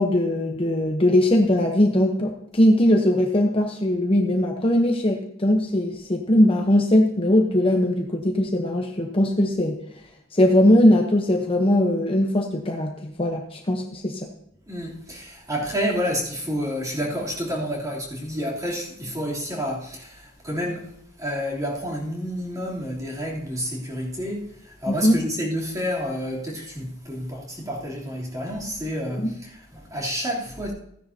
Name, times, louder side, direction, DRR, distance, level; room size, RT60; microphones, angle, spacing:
voice 1, 0.0-9.8 10.3-14.3 24.9-25.2 29.2-29.3, left 1 dB, 30° left, 0.9 m, -20 dB
voice 2, 14.7-30.7, equal, 15° right, 3.2 m, -29 dB
15.5 x 10.0 x 2.8 m
head